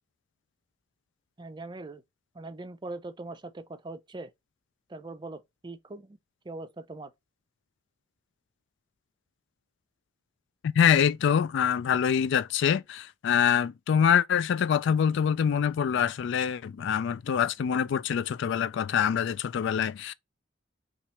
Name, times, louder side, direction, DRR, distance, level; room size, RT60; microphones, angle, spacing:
voice 1, 1.4-2.0 2.4-4.3 4.9-6.2 6.5-7.1, right 2 dB, 25° right, 0.5 m, -41 dB
voice 2, 10.8-20.1, left 8 dB, 65° left, 0.3 m, -25 dB
5.8 x 2.4 x 3.1 m
head